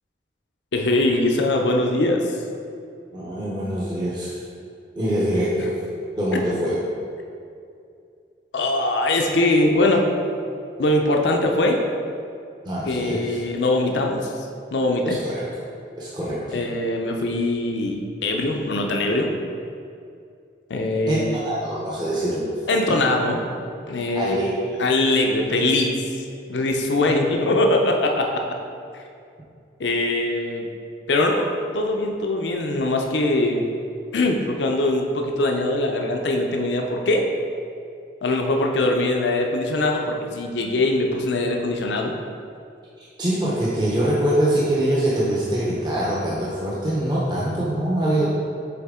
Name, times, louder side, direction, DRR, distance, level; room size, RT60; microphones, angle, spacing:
voice 1, 0.7-2.3 6.3-6.4 8.5-10.1 10.8-11.8 12.9-14.3 14.7-15.2 16.5-19.3 20.7-21.4 22.7-23.4 23.9-24.5 24.8-26.0 26.5-28.4 29.8-30.7 31.1-31.5 31.7-33.6 34.1-37.3 38.2-42.1 48.2-48.3, left 2 dB, 90° left, 2 dB, 0.6 m, -22 dB
voice 2, 3.1-4.4 5.0-5.8 6.1-6.8 12.6-13.4 15.0-15.6 16.0-16.6 21.1-22.5 24.1-24.8 43.2-48.2, right 1 dB, 25° right, -7 dB, 0.7 m, -24 dB
7.0 x 4.1 x 3.6 m, 2.5 s
head